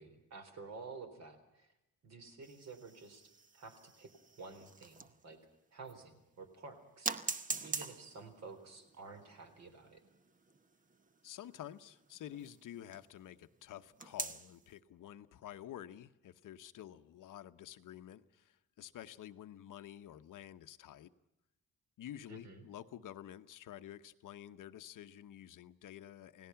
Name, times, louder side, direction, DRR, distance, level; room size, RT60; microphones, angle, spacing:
voice 1, 0.0-1.7 2.0-4.1 4.4-5.4 5.7-7.4 7.6-10.0 22.3-22.6, right 4 dB, 50° right, 7 dB, 4.0 m, -51 dB
sound 1, 2.4-5.3 5.9-6.0 7.0-13.1 14.0-14.6, right 4 dB, 25° right, 0.9 m, -44 dB
voice 2, 11.2-21.1 22.0-26.5, left 11 dB, 65° left, 10 dB, 1.0 m, -50 dB
29.0 x 18.0 x 5.8 m, 0.88 s
cardioid pair, 175°, 34 cm